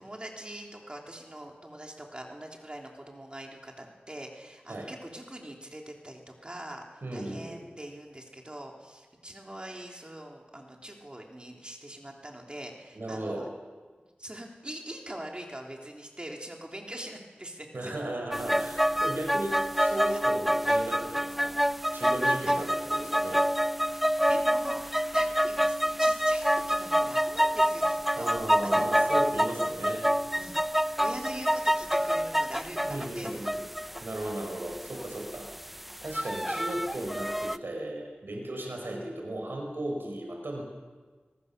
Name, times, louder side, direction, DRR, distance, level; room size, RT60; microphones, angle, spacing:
voice 1, 0.0-13.5 14.2-17.9 20.1-20.2 22.5-22.6 23.9-28.3 28.6-28.9 30.3-30.6 31.0-33.5, right 1 dB, 25° right, 1 dB, 3.3 m, -43 dB
voice 2, 7.0-7.6 12.9-13.5 17.7-21.6 21.9-23.4 28.1-30.0 32.8-33.6 34.0-35.5 36.0-40.6, right 1 dB, 75° right, 1 dB, 4.9 m, -36 dB
sound 1, 18.3-37.6, equal, 5° right, 0.6 m, -27 dB
24.5 x 19.0 x 6.8 m, 1.4 s
wide cardioid pair, 65°, 4 cm